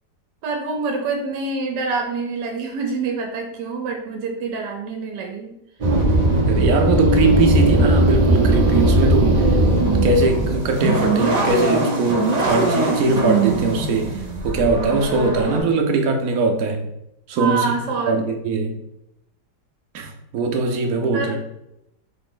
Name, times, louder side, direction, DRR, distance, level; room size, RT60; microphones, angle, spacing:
voice 1, 0.4-5.5 17.4-18.2 21.1-21.4, right 4 dB, 85° right, 2 dB, 1.3 m, -26 dB
sound 1, 5.8-15.6, right 1 dB, 45° right, 0.5 m, -19 dB
voice 2, 6.4-14.2 14.4-16.9 17.3-17.7 18.1-18.8 19.9-21.4, right 3 dB, 65° right, 4 dB, 1.0 m, -21 dB
4.0 x 3.0 x 3.7 m, 0.82 s
omnidirectional pair, 1.8 m